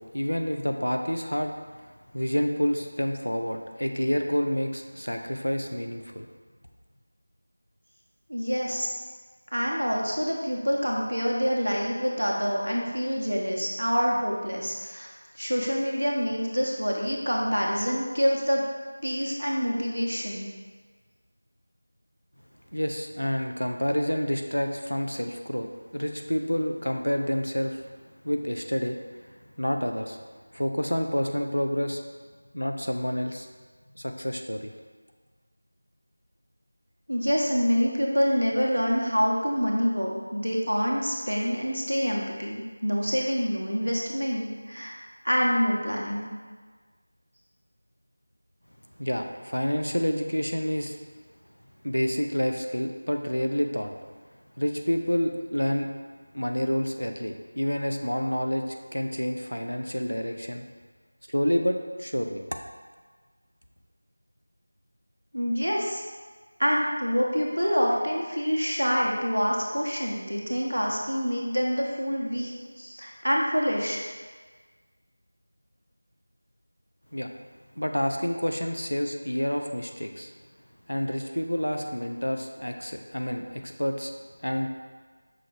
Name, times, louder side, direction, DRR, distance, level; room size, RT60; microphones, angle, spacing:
voice 1, 0.0-1.5 2.1-6.3 22.7-27.9 28.2-29.0 29.6-30.2 30.5-32.0 32.5-33.5 34.0-34.7 49.0-51.0 51.8-53.9 54.6-55.9 56.3-60.7 61.3-62.4 77.1-77.3 77.8-80.3 80.9-84.1 84.4-84.7, equal, 85° left, 4 dB, 0.5 m, -28 dB
voice 2, 8.3-8.9 9.5-15.1 15.3-18.6 19.0-20.5 37.1-45.0 45.2-46.3 65.3-66.0 66.6-72.5 72.8-74.0, equal, 85° right, -2 dB, 0.9 m, -26 dB
5.7 x 2.5 x 3.3 m, 1.5 s
figure-of-eight pair, 170°, 0 cm